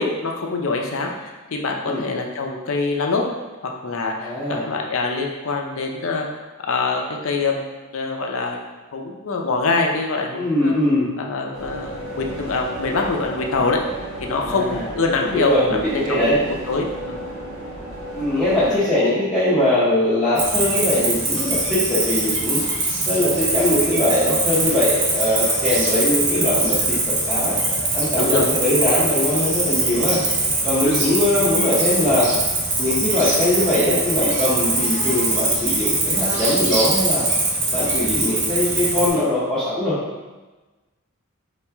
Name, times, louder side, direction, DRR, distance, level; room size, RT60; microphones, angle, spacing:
voice 1, 0.0-3.3 3.6-6.3 6.6-7.6 7.9-8.6 8.9-10.7 11.2-13.8 14.2-15.8 16.1-16.3 16.7-17.2 26.4-26.5 28.2-28.5 30.8-31.0 38.6-38.7, left 3 dB, 70° left, 1 dB, 0.6 m, -24 dB
voice 2, 4.2-4.6 10.3-11.0 14.3-14.9 15.3-16.4 18.1-22.6 23.1-27.0 27.3-27.6 27.9-30.2 30.6-32.3 32.8-37.2 37.7-40.0, left 1 dB, 5° left, -13 dB, 0.8 m, -21 dB
sound 1, 11.5-18.8, equal, 90° right, 1.5 m, -34 dB
Cricket, 20.4-39.1, right 2 dB, 55° right, 0.9 m, -22 dB
4.7 x 3.1 x 3.4 m, 1.2 s
head